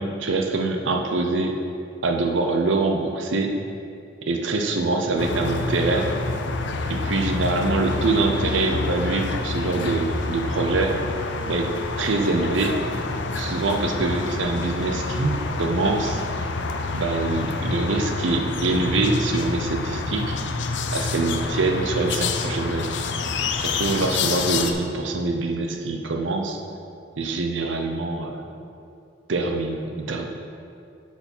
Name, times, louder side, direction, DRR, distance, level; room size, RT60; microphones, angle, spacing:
voice 1, 0.0-1.6 2.0-3.6 4.3-6.1 6.9-11.0 11.5-11.7 12.0-12.8 13.3-16.2 16.9-20.4 20.9-23.0 23.6-26.6 27.2-28.5 29.3-30.3, right 3 dB, 70° right, 3 dB, 0.6 m, -24 dB
sound 1, 5.2-24.7, left 3 dB, 65° left, 0.5 m, -28 dB
8.2 x 4.8 x 5.4 m, 2.5 s
head